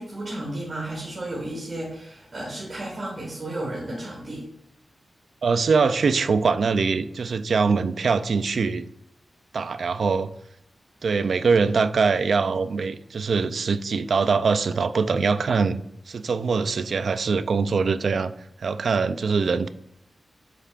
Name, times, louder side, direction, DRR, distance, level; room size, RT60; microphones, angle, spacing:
voice 1, 0.0-4.4, right 1 dB, 45° right, -5 dB, 1.9 m, -33 dB
voice 2, 5.4-8.9 9.5-10.3 11.0-18.3 18.6-19.7, right 5 dB, 70° right, 12 dB, 0.4 m, -23 dB
8.2 x 5.6 x 2.4 m, 0.75 s
wide cardioid pair, 135°, 0 cm